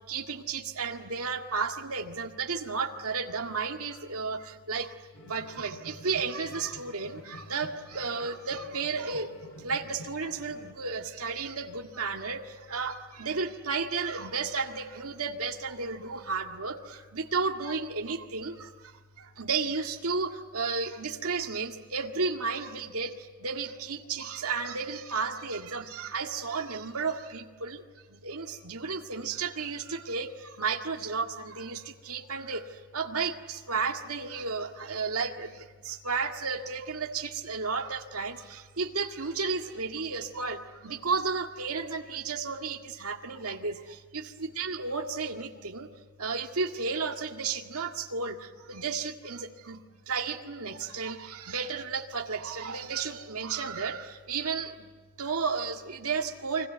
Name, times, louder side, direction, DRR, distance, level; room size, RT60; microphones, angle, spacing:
voice 1, 0.1-5.0 5.2-18.9 19.2-27.8 28.1-45.9 46.2-54.9 55.2-56.7, right 4 dB, 75° right, 3 dB, 2.0 m, -33 dB
sound 1, 5.1-10.7, left 1 dB, 90° left, 2.3 m, -49 dB
30.0 x 23.0 x 8.1 m, 1.5 s
head